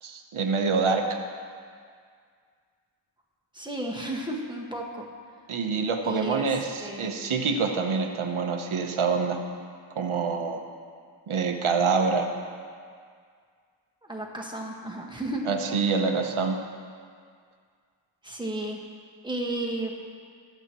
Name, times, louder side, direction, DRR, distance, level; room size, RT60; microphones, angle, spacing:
voice 1, 0.0-1.1 5.5-9.4 10.0-10.6 11.3-12.3 15.5-16.6, right 5 dB, 85° right, 4 dB, 1.1 m, -26 dB
voice 2, 3.5-5.0 6.0-6.5 6.8-7.2 14.0-15.4 18.2-18.8 19.2-19.9, right 1 dB, 10° right, -1 dB, 1.6 m, -33 dB
22.5 x 8.1 x 3.0 m, 2.1 s
wide cardioid pair, 90°, 48 cm